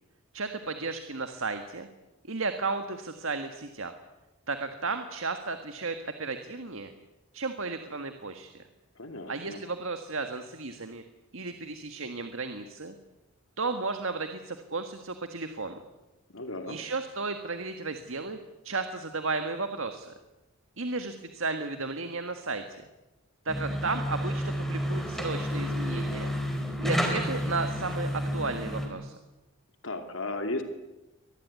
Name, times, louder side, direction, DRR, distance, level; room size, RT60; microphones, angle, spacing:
voice 1, 0.3-1.9 2.3-3.9 4.5-6.9 7.3-8.7 9.3-11.0 11.3-13.0 13.6-15.8 16.7-18.4 18.6-20.1 20.8-22.8 23.5-26.3 26.8-29.2, right 3 dB, 65° right, 8 dB, 1.7 m, -34 dB
voice 2, 9.0-9.6 16.3-16.8 29.8-30.6, left 2 dB, 60° left, 6 dB, 2.6 m, -35 dB
sound 1, 23.5-28.9, equal, ahead, 4.5 m, -30 dB
24.5 x 19.5 x 9.5 m, 1.0 s
head